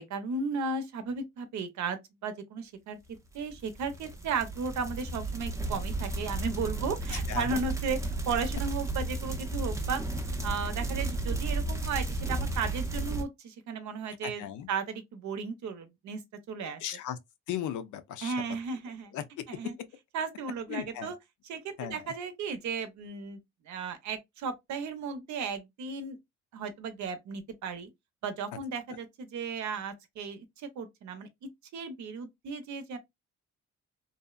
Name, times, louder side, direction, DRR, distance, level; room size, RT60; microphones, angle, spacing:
voice 1, 0.0-3.0 3.3-8.0 8.3-10.0 10.4-14.4 14.7-16.2 16.5-16.8 18.2-19.1 19.5-19.7 20.1-21.1 21.5-23.4 23.7-26.2 26.5-27.9 28.2-31.3 31.7-33.0, right 5 dB, 70° right, 0.7 m, -35 dB
sound 1, 3.4-13.2, right 2 dB, 10° right, 0.5 m, -33 dB
voice 2, 7.1-7.6 14.2-14.7 16.6-17.2 17.5-18.4 19.1-19.7 20.7-21.2 21.8-22.1, left 10 dB, 80° left, 0.5 m, -37 dB
2.7 x 2.0 x 2.3 m
cardioid pair, 90°, 30 cm